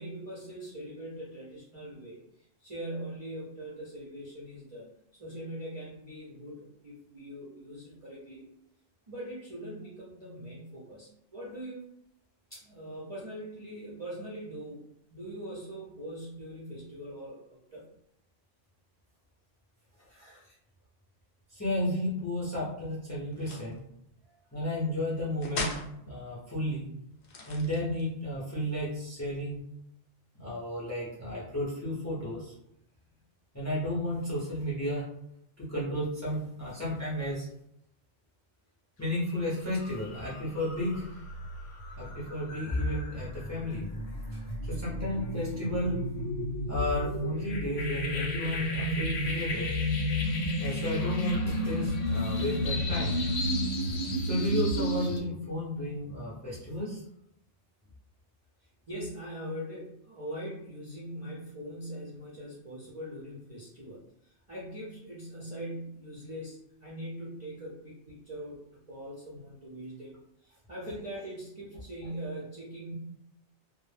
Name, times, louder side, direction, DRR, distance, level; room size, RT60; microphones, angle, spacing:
voice 1, 0.0-2.2 2.6-8.5 9.1-11.8 12.5-14.8 15.1-17.4 17.7-17.8 20.1-20.6 58.9-70.2 70.4-72.9, right 1 dB, 45° right, -7 dB, 0.4 m, -42 dB
voice 2, 21.5-23.8 24.5-25.7 26.0-26.9 27.5-29.6 30.4-32.5 33.5-35.0 35.6-37.5 39.0-41.2 42.0-43.9 44.3-46.0 46.7-49.7 50.4-53.2 54.3-57.0, left 1 dB, 20° left, -6 dB, 0.4 m, -33 dB
sound 1, 23.3-23.8 25.4-25.9 27.2-28.1, left 2 dB, 60° left, 0.7 m, -37 dB
sound 2, 39.1-39.4 39.7-55.2, equal, 80° left, 0.9 m, -32 dB
2.1 x 2.0 x 3.1 m, 0.78 s
omnidirectional pair, 1.3 m